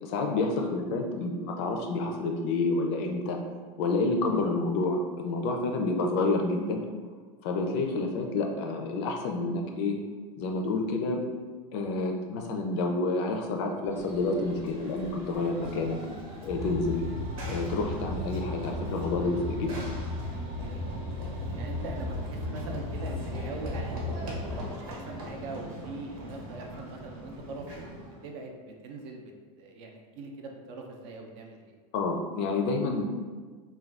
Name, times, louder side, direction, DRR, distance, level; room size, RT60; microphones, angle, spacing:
voice 1, 0.0-3.4 3.8-6.8 7.4-10.0 10.4-11.2 11.7-16.0 16.4-17.0 17.5-19.8 31.9-33.0, left 3 dB, 50° left, 2 dB, 0.4 m, -29 dB
Run / Train, 13.8-28.3, right 1 dB, 75° right, 0.9 m, -42 dB
sound 1, 16.4-24.6, left 2 dB, 5° right, 0.7 m, -35 dB
voice 2, 21.5-24.0 24.6-31.7, right 3 dB, 55° right, 1 dB, 0.5 m, -42 dB
2.4 x 2.2 x 3.3 m, 1.5 s
supercardioid pair, 155°, 18 cm